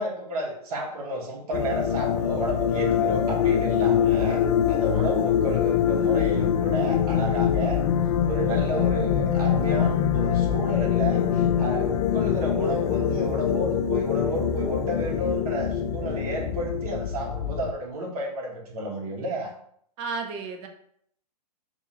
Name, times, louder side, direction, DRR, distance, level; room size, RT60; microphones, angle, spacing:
voice 1, 0.0-4.4 4.7-7.8 8.2-19.5, right 1 dB, 60° right, 0 dB, 1.4 m, -31 dB
sound 1, 1.5-17.7, left 9 dB, 45° left, 0.4 m, -24 dB
voice 2, 4.9-5.3 20.0-20.7, right 4 dB, 30° right, 3 dB, 0.6 m, -34 dB
3.4 x 2.6 x 4.3 m, 0.67 s
hypercardioid pair, 135°, 21 cm